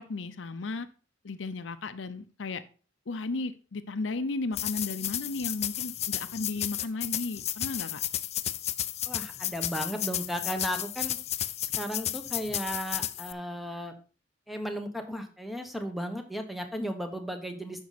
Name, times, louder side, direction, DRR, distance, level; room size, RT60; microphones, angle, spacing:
voice 1, 0.1-0.9 1.2-2.6 3.1-8.0, left 3 dB, 75° left, 11 dB, 0.6 m, -34 dB
sound 1, 4.5-13.3, left 12 dB, 35° left, 0.4 m, -33 dB
voice 2, 9.1-11.2 11.6-13.9 14.5-17.8, equal, ahead, 5 dB, 1.1 m, -35 dB
9.4 x 6.2 x 4.2 m, 0.38 s
head